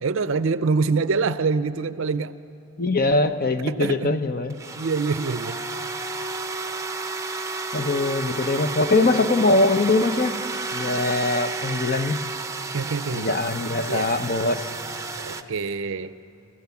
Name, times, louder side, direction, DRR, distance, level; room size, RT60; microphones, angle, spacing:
voice 1, 0.0-2.3 3.7-4.1 4.8-5.6 12.7-13.3 13.9-14.1 15.2-16.1, right 4 dB, 60° right, 14 dB, 0.5 m, -25 dB
voice 2, 2.8-4.6 7.7-10.4 10.7-12.2 13.1-14.7, left 2 dB, 45° left, 9 dB, 0.9 m, -22 dB
sound 1, 4.5-15.4, right 3 dB, 15° right, 0.7 m, -31 dB
29.5 x 15.5 x 7.1 m, 3.0 s
head